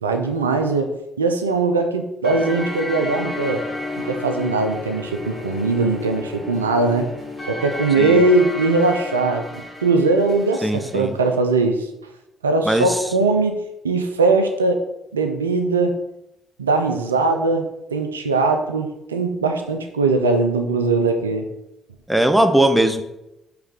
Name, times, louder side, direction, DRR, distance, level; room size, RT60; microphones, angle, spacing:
voice 1, 0.0-3.6 4.0-7.1 7.5-11.9 12.4-14.8 15.1-16.0 16.6-21.5, right 3 dB, 90° right, 6 dB, 0.4 m, -20 dB
sound 1, 2.2-11.0, left 2 dB, 25° left, 1.1 m, -32 dB
voice 2, 10.6-11.1 12.6-13.0 22.1-23.0, right 1 dB, 5° right, 8 dB, 0.6 m, -19 dB
4.5 x 3.2 x 3.6 m, 0.89 s
hypercardioid pair, 45°, 0 cm